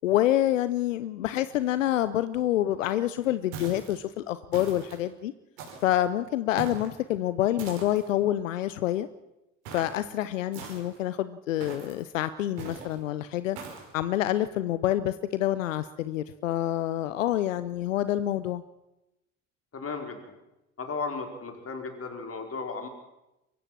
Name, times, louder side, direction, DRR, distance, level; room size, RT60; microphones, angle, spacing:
voice 1, 0.0-5.3 5.8-9.1 9.7-13.6 13.9-18.6, left 13 dB, 85° left, 15 dB, 0.7 m, -27 dB
sound 1, 3.5-4.0 4.5-5.0 5.6-6.0 6.6-6.9 7.6-8.1 9.6-10.0 10.5-11.0 11.6-12.0 12.6-12.9 13.5-13.9, right 4 dB, 70° right, 5.7 m, -41 dB
voice 2, 19.7-20.3 20.8-22.9, left 4 dB, 35° left, 5 dB, 4.6 m, -35 dB
23.5 x 15.0 x 7.5 m, 0.94 s
hypercardioid pair, 55°, 38 cm